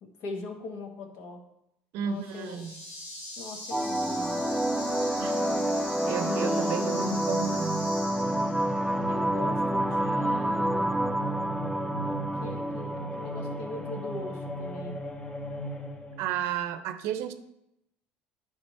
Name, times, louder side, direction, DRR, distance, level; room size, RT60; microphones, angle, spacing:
voice 1, 0.0-1.4 2.0-2.7 3.4-4.5 6.2-7.4 9.0-10.9 12.0-15.0, left 4 dB, 70° left, 4 dB, 1.2 m, -40 dB
voice 2, 1.9-2.8 5.2-5.4 6.0-8.0 16.2-17.3, right 9 dB, 70° right, 10 dB, 0.6 m, -33 dB
sound 1, 2.1-8.8, left 1 dB, 85° left, 2.5 m, -41 dB
sound 2, 3.7-14.7, right 1 dB, ahead, 0.3 m, -29 dB
sound 3, 8.2-16.3, equal, 25° left, 0.8 m, -37 dB
9.7 x 3.4 x 4.3 m, 0.83 s
supercardioid pair, 90°, 5 cm